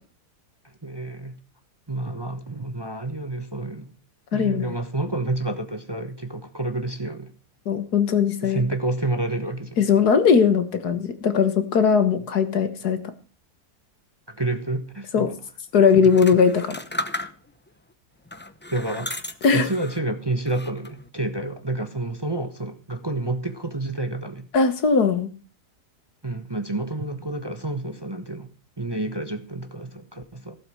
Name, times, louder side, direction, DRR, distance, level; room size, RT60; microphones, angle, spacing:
voice 1, 0.8-1.4 1.9-3.9 4.3-7.3 8.4-9.8 14.3-15.3 15.9-16.0 18.7-19.1 19.5-24.5 26.2-28.5 28.8-30.6, right 2 dB, 15° right, 8 dB, 1.1 m, -29 dB
voice 2, 4.3-4.7 7.7-8.6 9.8-13.0 15.1-15.3 15.7-16.7 19.4-19.7 24.5-25.3, left 6 dB, 75° left, 10 dB, 1.9 m, -19 dB
sound 1, 16.0-17.7 18.3-20.1 20.5-21.1, left 1 dB, 10° left, 0.5 m, -34 dB
15.5 x 7.9 x 6.3 m, 0.38 s
omnidirectional pair, 1.7 m